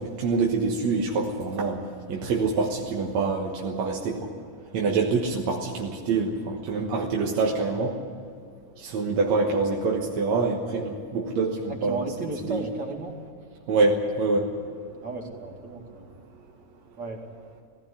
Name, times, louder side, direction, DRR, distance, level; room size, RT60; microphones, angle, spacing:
voice 1, 0.0-4.3 4.7-8.0 8.8-12.6 13.7-14.5, right 3 dB, 60° right, 0 dB, 2.3 m, -26 dB
voice 2, 11.7-13.1 15.0-16.1 17.0-17.2, right 3 dB, 35° right, 2 dB, 2.7 m, -34 dB
18.5 x 17.0 x 9.9 m, 2.3 s
omnidirectional pair, 3.9 m